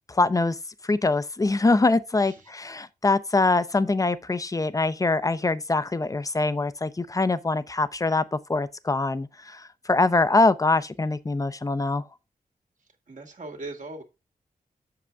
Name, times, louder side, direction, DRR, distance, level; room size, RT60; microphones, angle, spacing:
voice 1, 0.1-0.6 0.8-12.0, left 3 dB, 20° left, 0.6 m, -24 dB
voice 2, 13.1-14.0, right 2 dB, 55° right, 2.3 m, -39 dB
7.7 x 6.7 x 3.5 m
wide cardioid pair, 95°, 15 cm